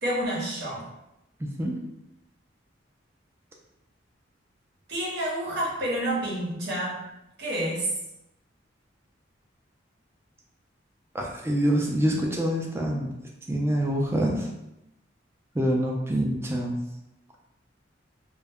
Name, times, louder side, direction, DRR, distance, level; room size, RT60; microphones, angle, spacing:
voice 1, 0.0-0.9 4.9-7.1 7.4-8.0, right 1 dB, 60° right, -4 dB, 0.8 m, -29 dB
voice 2, 1.4-1.7 11.1-13.1 13.5-14.5 15.5-16.8, equal, 15° right, -1 dB, 0.4 m, -26 dB
2.2 x 2.1 x 3.4 m, 0.88 s
head